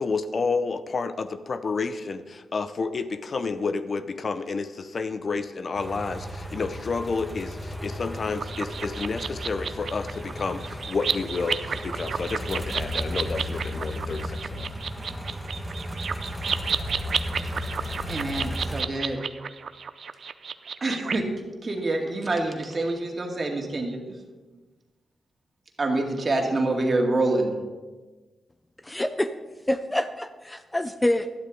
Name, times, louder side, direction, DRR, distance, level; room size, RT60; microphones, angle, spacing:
voice 1, 0.0-14.7, left 4 dB, 50° left, 12 dB, 0.6 m, -30 dB
sound 1, 5.8-18.8, left 1 dB, ahead, 1.6 m, -35 dB
sound 2, 8.4-21.2, right 6 dB, 65° right, 0.5 m, -32 dB
voice 2, 18.1-19.2 20.8-21.2 21.6-24.2 25.8-27.6, right 2 dB, 40° right, 2 dB, 2.2 m, -26 dB
voice 3, 28.8-29.3 29.7-31.3, left 1 dB, 15° left, 10 dB, 0.6 m, -26 dB
12.0 x 11.5 x 3.9 m, 1.3 s
cardioid pair, 60°, 0 cm